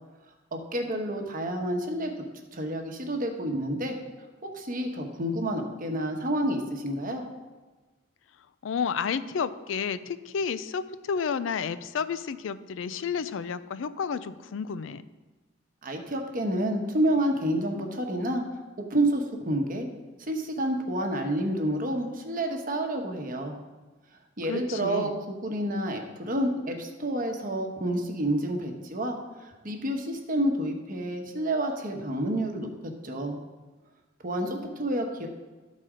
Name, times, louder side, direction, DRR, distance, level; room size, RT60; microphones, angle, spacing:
voice 1, 0.5-2.1 2.5-4.0 4.4-7.2 15.8-18.4 18.8-19.9 20.3-23.6 24.4-29.2 29.4-33.4 34.2-35.3, right 1 dB, 45° right, 3 dB, 1.0 m, -29 dB
voice 2, 8.6-15.0 24.5-25.2, left 6 dB, 80° left, 14 dB, 0.4 m, -31 dB
12.5 x 4.2 x 4.9 m, 1.3 s
head